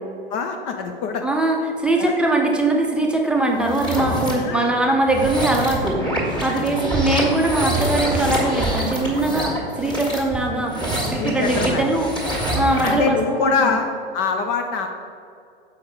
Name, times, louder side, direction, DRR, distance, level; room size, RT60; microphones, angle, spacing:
voice 1, 0.3-1.2 2.0-2.2 4.3-4.7 6.5-6.6 11.2-11.9 12.8-13.9 14.1-14.9, left 5 dB, 35° left, 5 dB, 0.5 m, -24 dB
voice 2, 1.2-10.8 11.1-12.1 12.5-13.7, right 2 dB, 5° right, 0 dB, 0.7 m, -21 dB
sound 1, 3.6-4.3 5.0-13.1, right 1 dB, 15° left, 1.8 m, -25 dB
7.0 x 4.9 x 4.5 m, 2.4 s
figure-of-eight pair, 100°, 31 cm